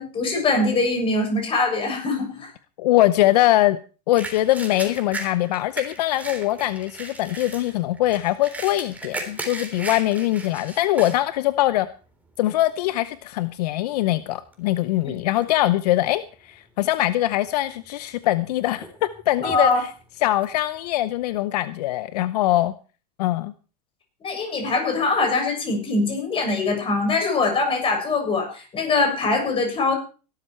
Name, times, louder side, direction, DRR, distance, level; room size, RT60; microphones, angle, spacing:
voice 1, 0.0-2.5 15.1-15.2 19.4-19.8 24.2-29.9, left 3 dB, 25° left, 3 dB, 7.0 m, -23 dB
voice 2, 2.8-3.8 4.1-11.9 12.4-19.9 20.2-22.7 23.2-23.5, left 15 dB, 70° left, 15 dB, 0.8 m, -22 dB
sound 1, 4.2-11.2 11.7-11.8 12.4-12.7 13.5-13.6 13.9-15.1 15.4-16.0 16.3-16.4 17.3-17.9 18.3-21.4, right 2 dB, 5° right, 3.5 m, -37 dB
17.0 x 12.5 x 4.5 m, 0.36 s
supercardioid pair, 130°, 21 cm